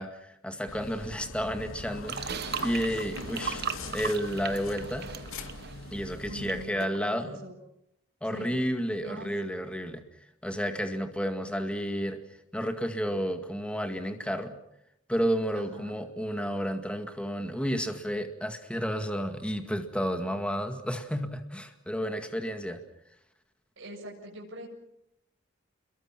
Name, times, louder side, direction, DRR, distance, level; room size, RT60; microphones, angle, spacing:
voice 1, 0.0-3.6 3.9-5.1 5.9-7.4 8.2-10.0 10.4-12.2 12.5-14.5 15.1-22.8, equal, 5° left, 7 dB, 2.0 m, -31 dB
sound 1, 0.7-6.6, left 2 dB, 85° left, 2.5 m, -41 dB
sound 2, 2.1-6.5 6.8-7.0, right 7 dB, 55° right, 1.4 m, -37 dB
voice 2, 6.2-7.5 8.3-8.6 9.0-9.3 15.5-15.9 23.8-24.7, right 1 dB, 70° right, -1 dB, 7.4 m, -43 dB
29.5 x 22.5 x 6.1 m, 0.78 s
head